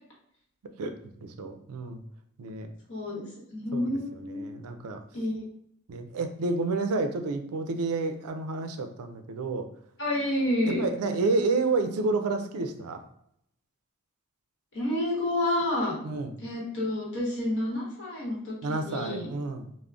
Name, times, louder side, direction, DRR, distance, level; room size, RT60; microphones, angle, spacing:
voice 1, 0.8-2.0 2.4-2.7 3.7-4.0 4.2-5.0 5.9-9.7 10.7-13.0 16.0-16.3 18.6-19.7, right 3 dB, 80° right, 7 dB, 0.4 m, -30 dB
voice 2, 2.9-3.2 3.5-4.6 5.1-5.4 10.0-10.8 14.7-16.0 16.4-19.3, left 1 dB, 55° left, -4 dB, 1.0 m, -29 dB
3.6 x 2.0 x 2.3 m, 0.72 s
head